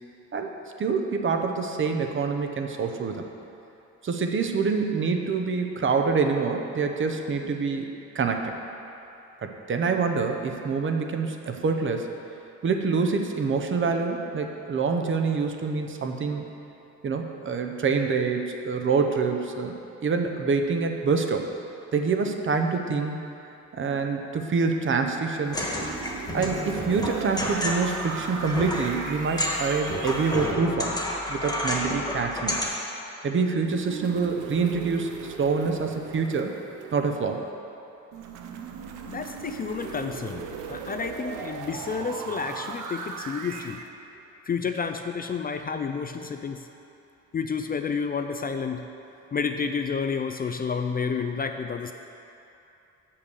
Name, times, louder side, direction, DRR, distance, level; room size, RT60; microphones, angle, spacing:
voice 1, 0.8-3.2 4.0-7.9 8.1-8.5 9.4-12.1 12.6-16.4 17.0-19.7 20.0-21.5 21.9-23.2 23.7-25.7 26.3-31.0 31.3-32.6 33.2-36.5 36.9-37.4, right 4 dB, 40° right, 4 dB, 0.8 m, -26 dB
sound 1, 25.4-30.5 33.6-37.4 38.1-43.9, right 6 dB, 80° right, 0.6 m, -38 dB
sound 2, 25.5-32.7, left 1 dB, 10° left, 1.5 m, -30 dB
voice 2, 39.1-43.8 44.5-46.7 47.3-48.8 49.3-51.9, left 5 dB, 30° left, 6 dB, 0.4 m, -30 dB
6.4 x 5.7 x 6.9 m, 2.8 s
cardioid pair, 90°, 30 cm